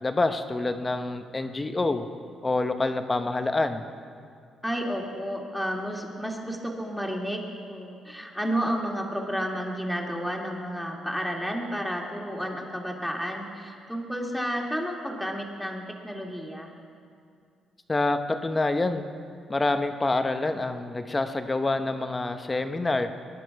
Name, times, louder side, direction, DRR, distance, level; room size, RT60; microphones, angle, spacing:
voice 1, 0.0-2.1 2.4-3.8 17.9-19.0 19.5-23.1, left 2 dB, 20° left, 7 dB, 0.9 m, -27 dB
voice 2, 4.6-16.7, equal, ahead, 0 dB, 2.2 m, -31 dB
22.0 x 11.0 x 4.7 m, 2.3 s
cardioid pair, 90°, 0 cm